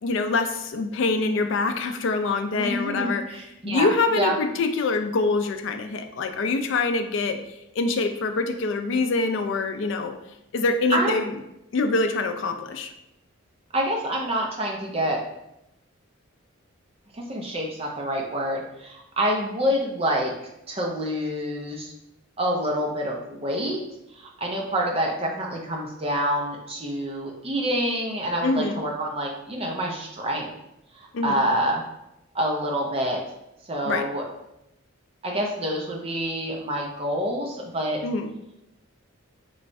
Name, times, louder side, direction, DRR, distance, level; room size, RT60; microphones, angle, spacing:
voice 1, 0.0-3.2 3.6-7.4 7.8-10.2 10.5-11.4 11.7-12.9 28.4-28.8 31.1-31.4 33.8-34.1 38.0-38.3, left 3 dB, 60° left, 7 dB, 0.3 m, -25 dB
voice 2, 2.6-4.3 10.9-11.2 13.7-15.2 17.1-20.3 20.7-21.9 22.4-23.8 24.2-30.5 30.9-31.8 32.3-33.2 33.7-34.2 35.2-38.0, equal, 25° right, 0 dB, 0.5 m, -27 dB
3.2 x 3.1 x 2.6 m, 0.85 s
head